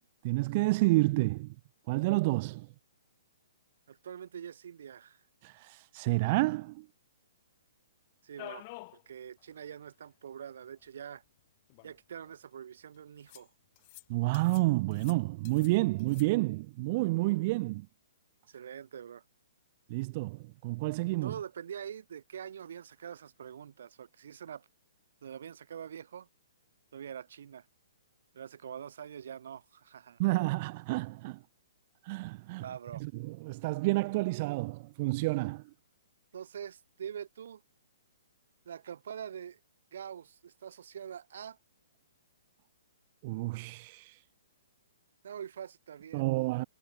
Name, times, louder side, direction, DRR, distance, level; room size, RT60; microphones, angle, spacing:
voice 1, 0.2-1.5 1.9-2.7 5.4-6.9 14.1-17.9 19.9-21.3 30.2-31.4 32.0-32.6 33.0-35.6 43.2-44.2 46.1-46.6, right 22 dB, 25° right, 0.3 m, -29 dB
voice 2, 3.9-5.2 8.2-8.7 9.1-11.2 11.8-13.5 18.5-19.2 21.2-24.7 25.2-26.3 26.9-27.7 28.3-30.2 32.6-33.1 36.3-37.6 38.7-39.6 39.9-41.6 45.2-46.3, right 8 dB, 55° right, 3.9 m, -44 dB
sound 1, 8.4-9.0 9.4-9.5 9.7-9.8 10.9-11.0 11.7-12.3 13.3-13.5 13.7-14.0 14.3-14.7 14.9-15.7 16.0-16.2, left 25 dB, 25° left, 1.1 m, -49 dB
hypercardioid pair, 175°, 0 cm